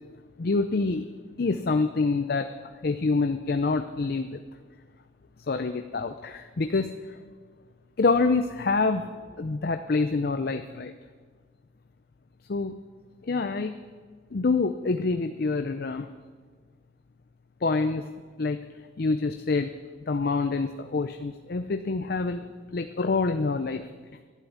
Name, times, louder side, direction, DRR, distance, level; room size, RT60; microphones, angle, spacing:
voice 1, 0.4-1.0 1.4-2.5 2.8-4.4 5.5-6.9 8.0-9.1 9.4-10.9 12.5-12.8 13.3-13.8 14.3-16.1 17.6-18.0 18.4-18.6 19.0-19.7 20.1-22.4 22.7-23.8, left 3 dB, 50° left, 8 dB, 0.5 m, -26 dB
11.5 x 11.5 x 8.5 m, 1.5 s
head